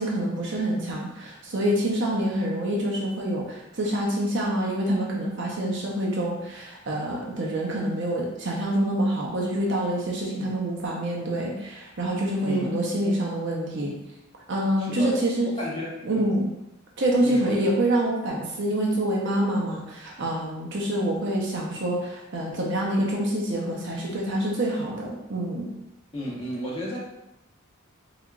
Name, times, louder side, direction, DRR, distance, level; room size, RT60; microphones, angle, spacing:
voice 1, 0.0-13.9 14.5-15.5 16.1-16.5 17.0-25.7, right 1 dB, 60° right, -2 dB, 0.6 m, -26 dB
voice 2, 12.4-12.7 14.8-15.2 15.6-16.3 17.2-17.5 26.1-27.0, left 1 dB, 25° left, -5 dB, 0.9 m, -33 dB
3.5 x 3.3 x 2.4 m, 0.90 s
head